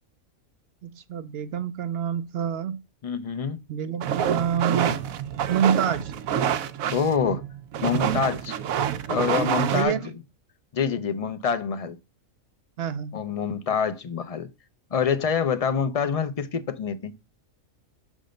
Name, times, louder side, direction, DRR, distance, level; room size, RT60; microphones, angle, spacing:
voice 1, 0.8-2.8 3.7-5.0 5.5-6.1 9.7-10.1 12.8-13.1, right 8 dB, 65° right, 0.6 m, -27 dB
voice 2, 3.0-3.6 6.9-7.4 7.8-8.6 9.1-10.0 10.7-12.0 13.1-14.5 14.9-17.1, left 6 dB, 40° left, 0.5 m, -26 dB
sound 1, 4.0-9.8, right 9 dB, 90° right, 1.1 m, -27 dB
6.6 x 3.7 x 5.0 m
omnidirectional pair, 1.4 m